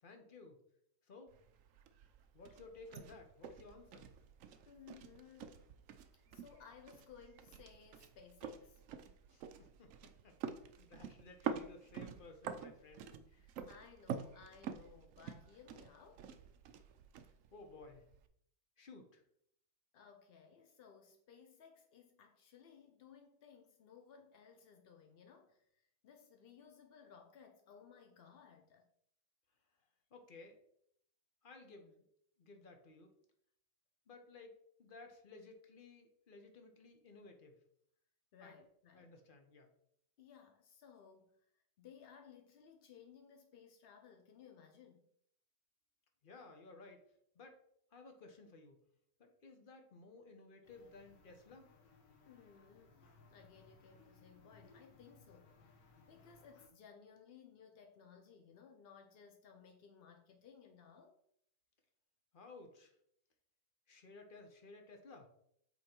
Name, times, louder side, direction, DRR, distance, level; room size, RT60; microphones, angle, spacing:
voice 1, 0.0-0.6 1.0-1.4 2.3-4.1 9.3-10.4 10.8-13.1 17.5-18.0 18.8-19.2 30.1-30.6 31.4-32.0 32.4-33.1 34.1-37.6 38.4-38.6 38.9-39.7 46.2-47.0 47.3-47.6 47.9-48.8 49.2-51.7 62.3-62.9 63.9-65.3, left 3 dB, 35° left, 4 dB, 0.9 m, -57 dB
sound 1, 1.3-18.3, right 7 dB, 70° right, 0.7 m, -48 dB
voice 2, 4.7-5.6 6.3-8.8 13.3-16.3 19.9-28.9 38.3-39.1 40.2-41.4 41.8-45.1 52.2-52.9 53.3-55.5 56.1-61.1, left 7 dB, 70° left, 4 dB, 0.5 m, -60 dB
sound 2, 50.6-56.7, left 3 dB, 85° left, 1.7 m, -65 dB
8.2 x 3.3 x 4.4 m, 0.70 s
omnidirectional pair, 1.9 m